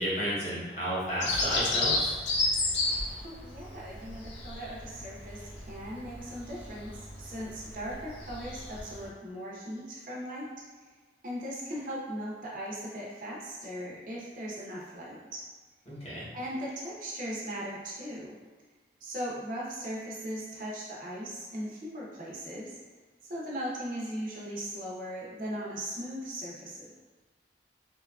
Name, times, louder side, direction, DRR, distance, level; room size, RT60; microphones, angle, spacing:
voice 1, 0.0-2.1 15.9-16.2, equal, 35° left, -8 dB, 0.8 m, -32 dB
Bird vocalization bird call bird song, 1.2-9.1, left 2 dB, 90° left, 0.5 m, -32 dB
voice 2, 3.2-10.5 11.2-15.4 16.3-18.4 19.0-22.8 23.3-26.9, equal, 45° right, -4 dB, 0.5 m, -38 dB
2.7 x 2.3 x 2.3 m, 1.3 s
head